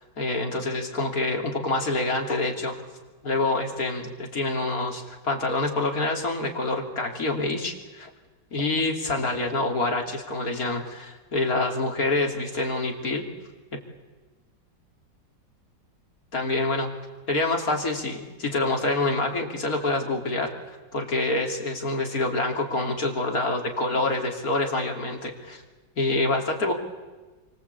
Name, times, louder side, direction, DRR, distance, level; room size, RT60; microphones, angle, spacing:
voice 1, 0.2-2.7 3.2-8.1 8.5-13.3 16.3-16.9 17.3-25.6 26.0-26.7, left 2 dB, 50° left, 2 dB, 3.6 m, -26 dB
28.5 x 24.5 x 8.4 m, 1.2 s
omnidirectional pair, 2.0 m